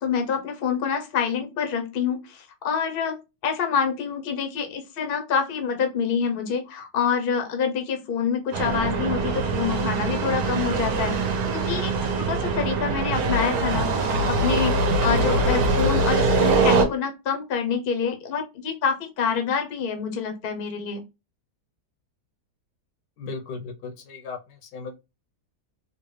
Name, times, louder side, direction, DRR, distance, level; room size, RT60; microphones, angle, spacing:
voice 1, 0.0-11.2 11.5-21.0, left 6 dB, 50° left, 6 dB, 0.7 m, -27 dB
sound 1, 8.5-16.8, right 3 dB, 65° right, 1.2 m, -23 dB
voice 2, 23.2-25.0, left 4 dB, 85° left, 5 dB, 1.4 m, -36 dB
3.7 x 2.2 x 3.2 m, 0.25 s
omnidirectional pair, 1.8 m